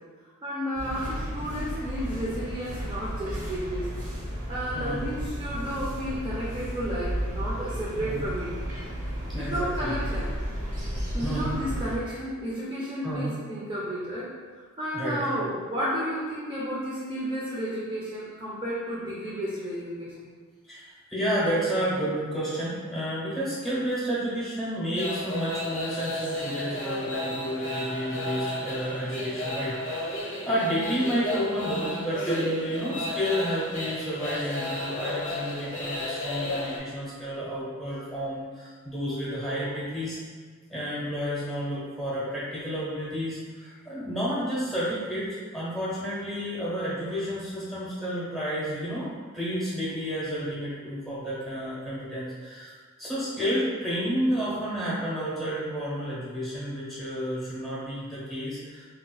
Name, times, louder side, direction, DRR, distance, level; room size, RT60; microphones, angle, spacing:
voice 1, 0.4-3.9 4.5-8.5 9.3-10.3 11.1-20.3, equal, 25° right, -8 dB, 0.4 m, -32 dB
sound 1, 0.7-12.0, equal, 85° right, 0.8 m, -33 dB
voice 2, 9.3-9.9 11.2-11.5 13.0-13.3 14.9-15.5 20.7-40.2 40.7-52.7 53.0-58.9, equal, ahead, -9 dB, 1.0 m, -31 dB
sound 2, 24.9-36.8, left 1 dB, 35° left, 0.6 m, -33 dB
3.9 x 2.7 x 2.2 m, 1.5 s
head